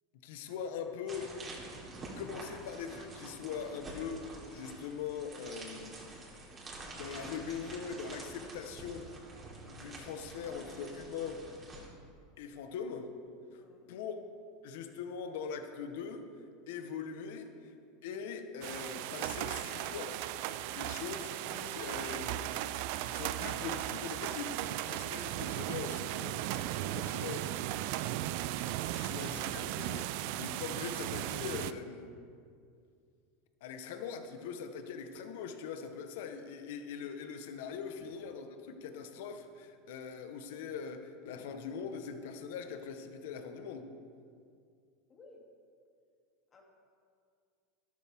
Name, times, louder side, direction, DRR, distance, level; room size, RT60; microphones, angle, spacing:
voice 1, 0.2-1.3 2.2-6.0 6.9-9.1 9.6-11.4 12.4-13.1 13.5-13.6 13.9-14.2 14.6-16.3 16.7-17.7 18.0-20.1 20.6-22.5 23.0-24.6 24.9-27.7 28.9-32.1 33.6-43.9, left 6 dB, 75° left, 7 dB, 1.1 m, -42 dB
sound 1, 1.1-11.9, right 2 dB, 25° right, 3.4 m, -48 dB
voice 2, 13.5-13.9 27.2-27.4 28.8-29.3 38.0-38.1 45.1-45.5 46.5-46.6, left 3 dB, 30° left, -1 dB, 2.8 m, -58 dB
sound 2, 18.6-31.7, right 14 dB, 65° right, 0.4 m, -37 dB
13.0 x 12.5 x 3.6 m, 2.3 s
supercardioid pair, 110°, 0 cm